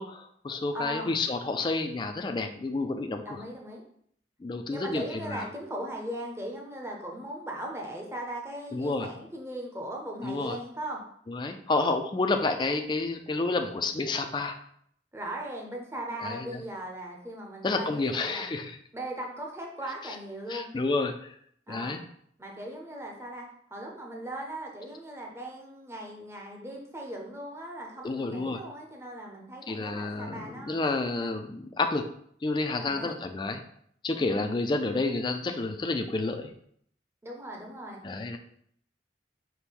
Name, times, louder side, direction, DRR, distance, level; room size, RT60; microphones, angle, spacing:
voice 1, 0.0-3.4 4.4-5.5 8.7-9.1 10.2-10.6 11.3-14.5 16.2-16.6 17.6-18.8 20.0-20.2 20.5-21.4 21.7-22.0 28.0-28.6 29.7-32.1 32.4-33.6 34.0-36.5 38.0-38.4, left 3 dB, 25° left, 6 dB, 0.3 m, -30 dB
voice 2, 0.7-1.2 3.2-3.8 4.7-11.0 12.3-12.4 15.1-18.5 18.9-20.7 21.7-22.0 22.4-23.4 23.7-30.8 31.2-31.3 32.8-33.2 34.2-34.5 37.2-38.0, right 1 dB, 15° right, -1 dB, 0.6 m, -38 dB
5.2 x 2.1 x 4.5 m, 0.66 s
head